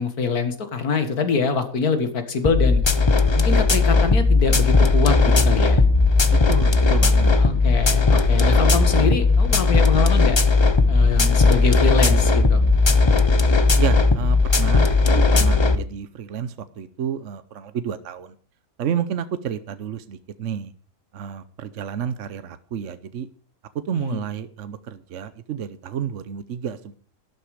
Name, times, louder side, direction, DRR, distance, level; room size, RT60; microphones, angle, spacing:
voice 1, 0.0-2.8 3.3-5.8 7.4-10.4 10.9-12.6 23.9-24.2, left 5 dB, 75° left, 8 dB, 2.3 m, -24 dB
sound 1, 2.4-15.8, left 3 dB, 25° left, 0.6 m, -17 dB
voice 2, 6.3-7.4 13.8-18.3 18.8-20.7 21.1-23.3 23.9-27.0, right 8 dB, 60° right, 12 dB, 1.0 m, -30 dB
12.0 x 12.0 x 4.9 m, 0.41 s
omnidirectional pair, 1.6 m